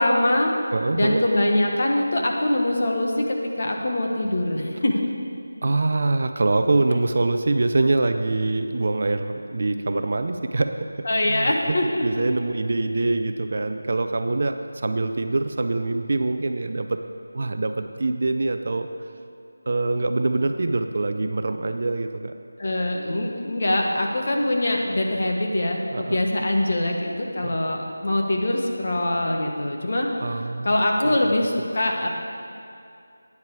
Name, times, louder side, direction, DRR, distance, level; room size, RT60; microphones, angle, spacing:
voice 1, 0.0-0.5 0.9-5.1 6.9-7.0 11.0-12.6 22.6-30.1 30.6-32.1, left 1 dB, 40° left, 1 dB, 1.3 m, -23 dB
voice 2, 0.7-1.2 5.6-11.8 12.0-17.0 17.3-18.9 19.7-22.3 25.9-26.2 27.4-27.6 30.2-30.7 31.0-31.3, right 2 dB, 40° right, 7 dB, 0.5 m, -24 dB
12.0 x 9.6 x 4.8 m, 2.4 s
figure-of-eight pair, 175°, 0 cm